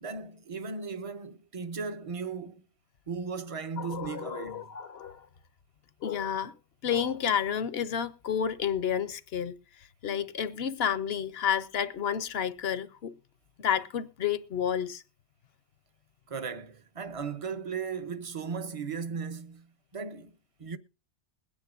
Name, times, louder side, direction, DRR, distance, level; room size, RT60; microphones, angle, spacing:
voice 1, 0.0-2.6 3.1-4.7 16.3-19.7 19.9-20.3 20.6-20.8, right 5 dB, 35° right, 0.8 m, -36 dB
voice 2, 3.8-5.3 6.0-6.5 6.8-13.1 13.6-15.0, left 8 dB, 65° left, 0.9 m, -31 dB
21.5 x 9.7 x 2.5 m
omnidirectional pair, 1.2 m